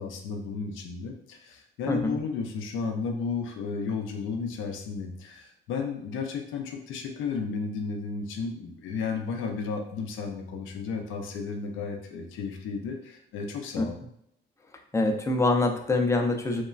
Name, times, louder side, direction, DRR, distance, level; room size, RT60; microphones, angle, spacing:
voice 1, 0.0-14.0, left 5 dB, 80° left, 4 dB, 0.5 m, -33 dB
voice 2, 1.9-2.2 13.8-13.9 14.9-16.6, left 2 dB, 15° left, 3 dB, 0.4 m, -25 dB
3.1 x 2.1 x 2.4 m, 0.73 s
cardioid pair, 90°, 20 cm